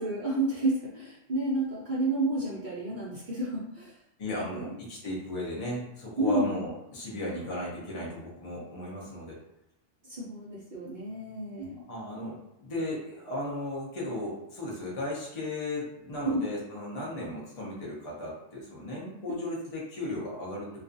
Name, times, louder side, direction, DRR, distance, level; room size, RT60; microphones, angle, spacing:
voice 1, 0.0-3.9 4.3-4.7 6.2-6.4 10.0-11.8 16.2-16.4, right 2 dB, 55° right, -7 dB, 0.5 m, -30 dB
voice 2, 4.2-9.4 11.9-20.7, left 1 dB, 45° left, -5 dB, 0.4 m, -36 dB
2.4 x 2.3 x 2.5 m, 0.87 s
omnidirectional pair, 1.4 m